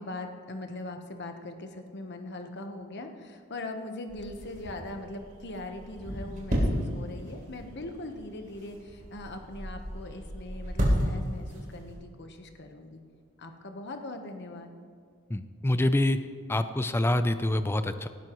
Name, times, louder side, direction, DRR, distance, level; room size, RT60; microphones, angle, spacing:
voice 1, 0.0-13.0 13.4-14.7, left 2 dB, 55° left, 5 dB, 1.1 m, -40 dB
sound 1, 4.1-12.0, equal, 40° right, 3.4 m, -33 dB
voice 2, 15.3-16.2 16.5-18.1, left 1 dB, 10° left, 11 dB, 0.4 m, -26 dB
18.0 x 12.5 x 3.1 m, 2.2 s
head